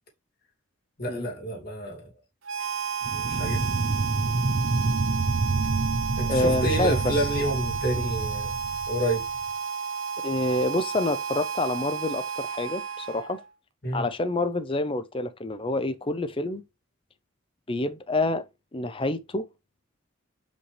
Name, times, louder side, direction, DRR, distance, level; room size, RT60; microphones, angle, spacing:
voice 1, 1.0-2.1 3.1-3.7 6.2-8.6 8.9-9.2 13.8-14.1, right 1 dB, 45° left, 2.5 m, -29 dB
Harmonica, 2.4-13.5, right 7 dB, 65° right, 0.8 m, -32 dB
sound 1, 3.0-9.5, right 3 dB, 35° right, 0.5 m, -28 dB
voice 2, 6.3-7.3 8.0-8.1 10.2-13.4 13.9-16.6 17.7-18.5 18.7-19.5, left 2 dB, 25° left, 0.5 m, -27 dB
5.5 x 5.2 x 3.3 m
head